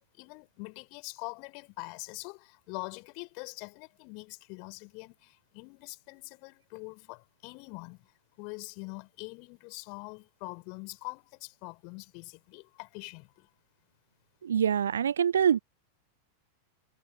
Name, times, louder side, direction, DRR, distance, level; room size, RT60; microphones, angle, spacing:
voice 1, 0.0-8.1 8.4-13.5, left 35 dB, 45° left, 3.8 m, -44 dB
voice 2, 14.4-15.6, right 8 dB, 65° right, 0.5 m, -25 dB
figure-of-eight pair, 90°, 0 cm